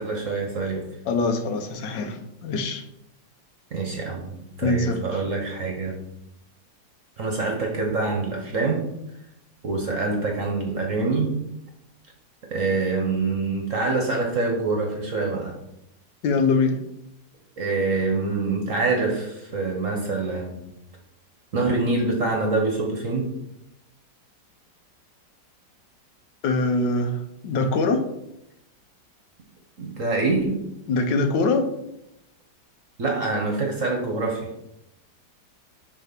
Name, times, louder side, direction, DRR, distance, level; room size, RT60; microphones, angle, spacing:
voice 1, 0.0-1.0 3.7-6.0 7.2-8.9 9.6-11.4 12.5-15.6 17.6-20.6 21.5-23.3 29.8-30.6 33.0-34.5, right 3 dB, 50° right, 1 dB, 1.2 m, -25 dB
voice 2, 1.1-2.8 4.6-5.0 16.2-16.8 26.4-27.2 27.4-28.0 30.9-31.7, left 3 dB, 70° left, 6 dB, 1.4 m, -23 dB
6.4 x 3.3 x 5.9 m, 0.83 s
omnidirectional pair, 2.0 m